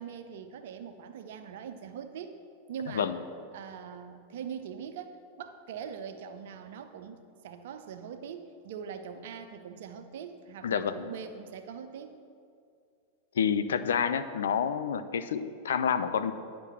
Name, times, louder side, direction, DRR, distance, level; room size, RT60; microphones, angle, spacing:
voice 1, 0.0-2.4 2.7-3.1 3.5-12.2, right 7 dB, 55° right, 8 dB, 0.7 m, -42 dB
voice 2, 10.6-11.1 13.3-16.3, left 7 dB, 65° left, 11 dB, 0.5 m, -28 dB
9.8 x 6.0 x 7.0 m, 2.3 s
figure-of-eight pair, 90°, 0 cm